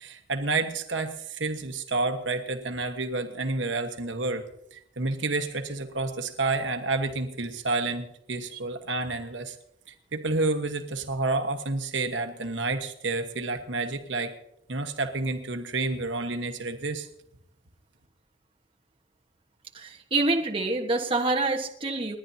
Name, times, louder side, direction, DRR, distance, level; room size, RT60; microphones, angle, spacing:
voice 1, 0.0-4.4 4.7-9.6 9.9-14.3 14.7-17.1, right 3 dB, 70° right, 6 dB, 1.3 m, -29 dB
voice 2, 19.7-22.2, right 2 dB, 30° right, 0 dB, 1.3 m, -26 dB
29.5 x 10.5 x 2.8 m, 0.76 s
head